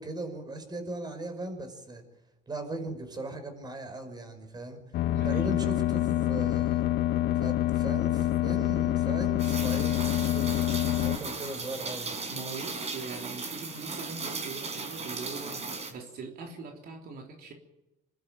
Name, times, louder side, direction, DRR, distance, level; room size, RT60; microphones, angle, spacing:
voice 1, 0.0-2.0 2.5-4.8 5.2-6.9 7.4-10.6 11.0-12.1, right 2 dB, 25° right, 8 dB, 5.5 m, -38 dB
sound 1, 4.9-11.2, left 13 dB, 75° left, 1.1 m, -26 dB
voice 2, 5.1-5.5 12.3-17.5, right 4 dB, 65° right, 2 dB, 3.5 m, -42 dB
Rain, 9.4-15.9, right 4 dB, 40° right, 5.4 m, -37 dB
26.5 x 13.0 x 9.0 m, 0.94 s
cardioid pair, 110°, 17 cm